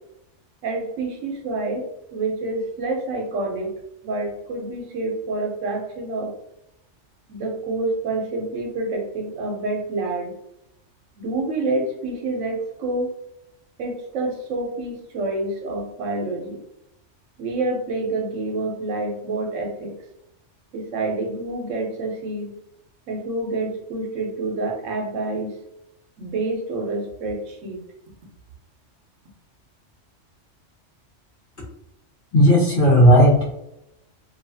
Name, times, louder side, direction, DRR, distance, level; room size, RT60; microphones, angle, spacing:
voice 1, 0.6-1.9 2.1-3.7 4.0-6.3 7.3-10.3 11.2-13.1 13.8-16.6 17.4-19.9 20.7-22.5 23.1-25.5 26.2-27.8, right 2 dB, 85° right, 2 dB, 1.0 m, -27 dB
voice 2, 32.3-33.5, equal, 50° left, -5 dB, 1.1 m, -14 dB
2.6 x 2.4 x 2.6 m, 0.83 s
omnidirectional pair, 1.3 m